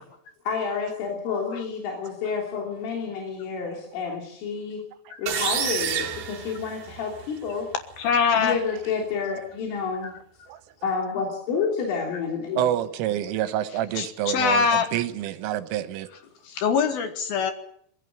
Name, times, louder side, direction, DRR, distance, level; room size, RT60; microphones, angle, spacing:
voice 1, 0.5-4.8 5.2-7.7 8.3-10.1 10.8-12.7, left 5 dB, 85° left, 0 dB, 5.7 m, -29 dB
sound 1, 5.3-7.2, right 8 dB, 65° right, 3.8 m, -28 dB
voice 2, 8.0-8.6 13.9-14.1 14.3-14.9 16.5-17.5, left 6 dB, 65° left, 8 dB, 2.7 m, -22 dB
voice 3, 12.6-16.1, right 12 dB, 85° right, 12 dB, 3.6 m, -27 dB
21.5 x 16.0 x 9.0 m, 0.65 s
omnidirectional pair, 5.6 m